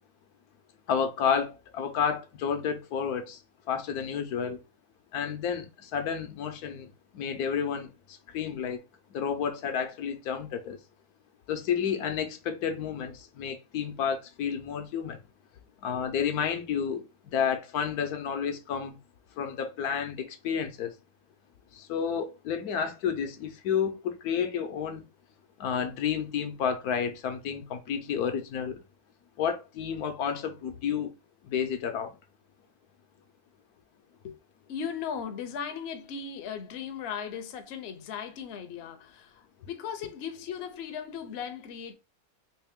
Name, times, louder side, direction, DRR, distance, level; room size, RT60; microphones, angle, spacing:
voice 1, 0.9-3.4 3.7-4.6 5.1-8.8 9.1-10.8 11.5-15.2 15.8-19.0 19.4-20.9 21.7-25.0 25.6-28.8 29.4-31.1 31.4-32.2, left 7 dB, 80° left, 1.2 m, -31 dB
voice 2, 34.7-41.9, left 7 dB, 55° left, 0.8 m, -37 dB
3.3 x 3.0 x 3.5 m
omnidirectional pair, 1.6 m